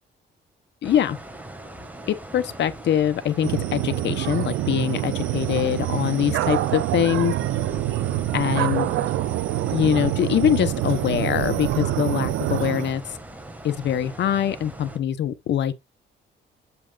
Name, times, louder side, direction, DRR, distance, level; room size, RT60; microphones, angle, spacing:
voice 1, 0.8-1.2 2.1-7.3 8.3-8.9 9.7-13.1 13.6-15.7, left 10 dB, 65° left, 0.9 m, -23 dB
sound 1, 0.8-15.0, right 1 dB, 10° right, 1.8 m, -40 dB
sound 2, 3.4-12.9, right 14 dB, 90° right, 0.7 m, -26 dB
7.6 x 5.7 x 2.4 m
cardioid pair, 90°, 20 cm